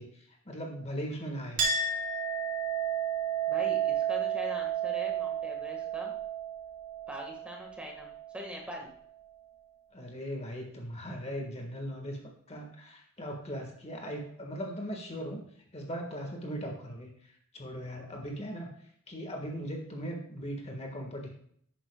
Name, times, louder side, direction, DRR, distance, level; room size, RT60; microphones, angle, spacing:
voice 1, 0.0-1.6 9.9-12.2 12.5-15.5 15.7-18.7 19.1-21.3, equal, 30° left, 2 dB, 1.6 m, -39 dB
Chink clink, 1.6-8.6, right 7 dB, 85° right, 3.2 m, -32 dB
voice 2, 3.5-6.1 7.1-8.1 8.3-8.9, equal, 5° right, 0 dB, 1.6 m, -42 dB
11.5 x 9.3 x 2.3 m, 0.64 s
head